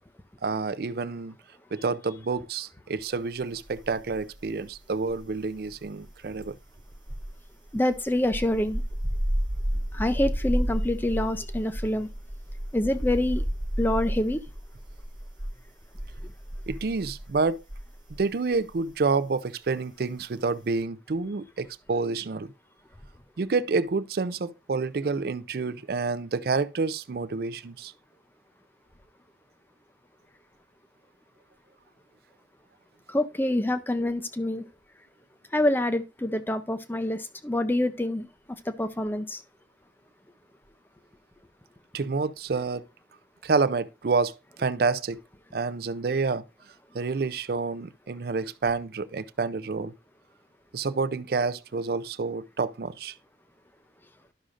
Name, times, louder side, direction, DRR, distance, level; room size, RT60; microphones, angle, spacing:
voice 1, 0.4-1.3 1.7-6.5 16.7-17.6 18.2-22.5 23.4-27.9 41.9-42.9 43.4-45.2 45.5-46.4 46.9-49.9 50.7-53.1, right 4 dB, 55° right, 0.4 m, -28 dB
sound 1, 3.7-4.5 4.7-18.3 18.5-18.8, equal, 25° right, 0.9 m, -32 dB
voice 2, 7.7-8.8 9.9-12.1 12.7-13.4 13.8-14.4 33.1-34.6 35.5-38.3 38.7-39.4, left 1 dB, 10° left, 0.5 m, -26 dB
11.5 x 6.2 x 2.5 m
head